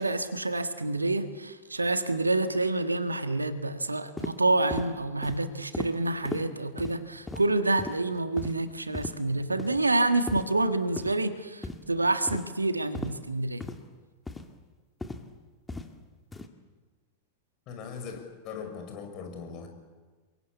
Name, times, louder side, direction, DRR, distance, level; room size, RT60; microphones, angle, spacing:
voice 1, 0.0-13.6, right 2 dB, 80° right, 10 dB, 1.6 m, -28 dB
sound 1, 4.2-4.3 4.7-4.9 5.2-5.4 5.7-5.9 6.2-6.4 6.8-7.0 7.3-7.4 7.8-8.0 8.4-8.5 8.9-9.1 9.6-9.8 10.3-10.4 11.0-11.1 11.6-11.8 12.3-12.5 12.9-13.1 13.6-13.8 14.3-14.4 15.0-15.2 15.7-15.9 16.3-16.5, left 2 dB, 10° left, 2.2 m, -36 dB
voice 2, 17.7-19.7, left 6 dB, 40° left, 5 dB, 6.0 m, -40 dB
28.5 x 23.0 x 8.5 m, 1.4 s
figure-of-eight pair, 90°, 0 cm